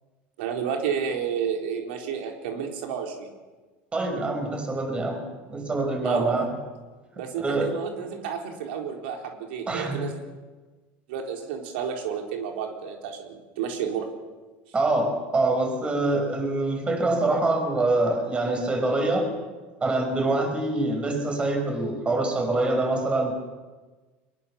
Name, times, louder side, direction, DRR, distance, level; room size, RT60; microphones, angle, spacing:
voice 1, 0.4-3.3 6.0-6.3 7.2-10.2 11.1-14.1, right 7 dB, 90° right, 2 dB, 4.2 m, -31 dB
voice 2, 3.9-6.6 7.4-7.7 9.7-10.0 14.7-19.3 19.8-23.3, right 2 dB, 20° right, 4 dB, 5.6 m, -25 dB
23.0 x 22.0 x 7.1 m, 1.3 s
supercardioid pair, 130°, 6 cm